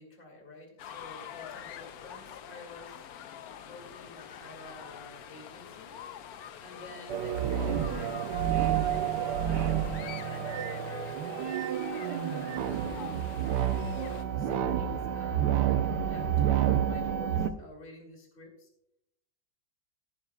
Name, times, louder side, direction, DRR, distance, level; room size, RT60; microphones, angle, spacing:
voice 1, 0.0-3.1 3.6-6.0 6.6-9.2 10.0-11.6 11.9-13.2 13.6-18.7, left 2 dB, 30° left, 2 dB, 2.4 m, -49 dB
sound 1, 0.8-14.2, left 9 dB, 65° left, 1.0 m, -46 dB
sound 2, 7.1-17.5, right 9 dB, 70° right, 1.2 m, -29 dB
15.0 x 10.5 x 2.2 m, 0.78 s
omnidirectional pair, 2.1 m